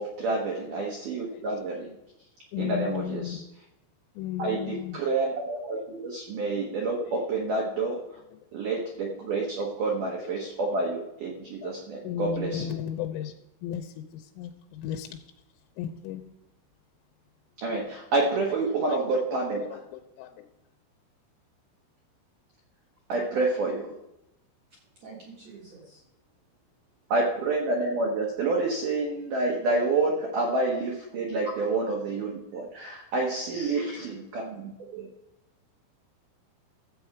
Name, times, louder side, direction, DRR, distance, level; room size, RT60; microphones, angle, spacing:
voice 1, 0.0-1.9 2.6-3.4 4.4-8.0 8.5-12.6 17.6-19.6 23.1-23.8 27.1-35.1, right 3 dB, 90° right, -1 dB, 1.8 m, -28 dB
voice 2, 1.3-1.7 2.5-3.4 4.1-5.0 5.7-5.8 7.0-7.2 7.9-8.0 9.5-9.7 10.2-10.3 10.7-11.0 11.6-11.7 12.0-13.3 13.6-15.2 15.8-16.2 18.4-20.5, left 10 dB, 85° left, 5 dB, 3.1 m, -36 dB
voice 3, 25.0-26.0 31.4-31.6 33.5-34.1, right 2 dB, 70° right, -4 dB, 1.7 m, -42 dB
13.0 x 7.9 x 4.7 m, 0.89 s
omnidirectional pair, 5.8 m